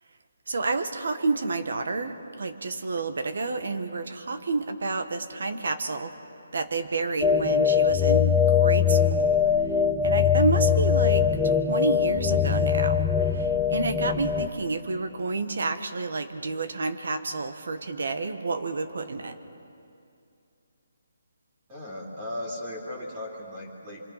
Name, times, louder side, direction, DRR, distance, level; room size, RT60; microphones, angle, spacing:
voice 1, 0.5-6.1 6.5-9.3 10.0-19.3, right 3 dB, 70° right, 9 dB, 1.6 m, -30 dB
sound 1, 7.2-14.5, left 7 dB, 5° left, 0.7 m, -22 dB
voice 2, 21.7-24.0, left 1 dB, 20° right, -2 dB, 3.3 m, -36 dB
26.0 x 24.5 x 5.9 m, 2.6 s
hypercardioid pair, 165°, 0 cm